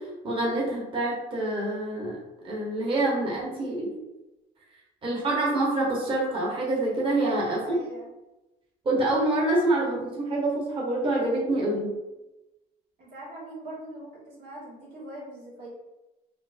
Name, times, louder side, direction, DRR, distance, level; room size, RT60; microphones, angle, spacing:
voice 1, 0.2-2.2 2.4-4.0 5.0-7.8 8.8-11.9, right 2 dB, 30° right, -4 dB, 1.0 m, -26 dB
voice 2, 7.2-8.1 13.0-15.7, right 1 dB, 85° right, -5 dB, 1.5 m, -41 dB
4.4 x 2.1 x 2.5 m, 0.99 s
cardioid pair, 110°, 17 cm